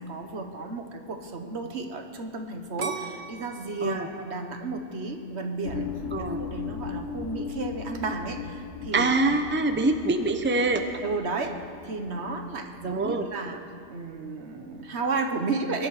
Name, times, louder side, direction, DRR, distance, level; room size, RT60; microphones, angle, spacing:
voice 1, 0.0-5.9 6.2-9.1 11.0-13.6 13.9-15.9, right 3 dB, 75° right, 5 dB, 1.5 m, -33 dB
sound 1, 2.8-5.7 6.2-6.7, right 5 dB, 50° right, 1.0 m, -38 dB
sound 2, 5.6-13.2, left 6 dB, 75° left, 1.1 m, -38 dB
voice 2, 8.9-10.8 12.8-13.3, right 2 dB, 10° right, 7 dB, 0.7 m, -24 dB
22.5 x 11.5 x 4.9 m, 2.5 s
omnidirectional pair, 1.1 m